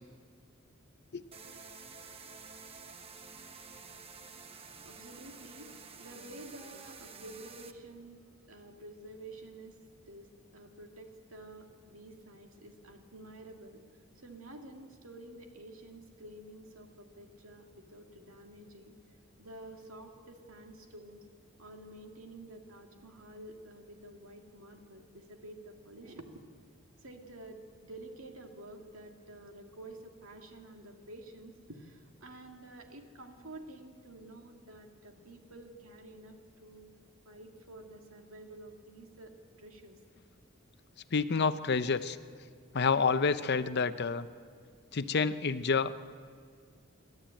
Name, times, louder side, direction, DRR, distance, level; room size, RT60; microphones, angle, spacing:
sound 1, 1.3-7.7, right 5 dB, 30° right, 1.0 m, -50 dB
voice 1, 4.6-5.7 6.0-8.2 8.5-9.8 10.1-13.8 14.2-18.9 19.4-21.3 21.6-36.9 37.2-40.0, right 1 dB, 75° right, 3 dB, 2.2 m, -50 dB
voice 2, 41.1-42.2 42.7-44.3 44.9-46.1, left 5 dB, 50° left, 12 dB, 0.7 m, -29 dB
27.5 x 12.0 x 8.8 m, 2.1 s
head